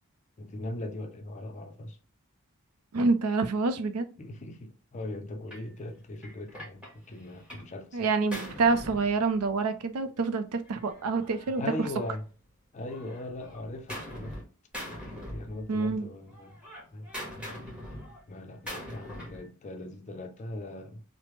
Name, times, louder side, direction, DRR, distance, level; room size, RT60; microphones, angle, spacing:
voice 1, 0.4-2.0 4.2-8.1 11.4-12.3 12.7-14.4 15.1-16.6 16.9-17.1 18.3-21.0, left 2 dB, 35° left, 0.4 m, -39 dB
voice 2, 2.9-4.1 7.9-11.9 15.7-16.1, right 4 dB, 80° right, 0.4 m, -27 dB
Gunshot gunfire, 5.5-5.7 6.2-7.7 8.0-9.7 10.7-12.5 12.9-14.4 14.7-16.0 16.3-19.5, equal, 5° right, 1.1 m, -43 dB
3.2 x 2.0 x 3.0 m
head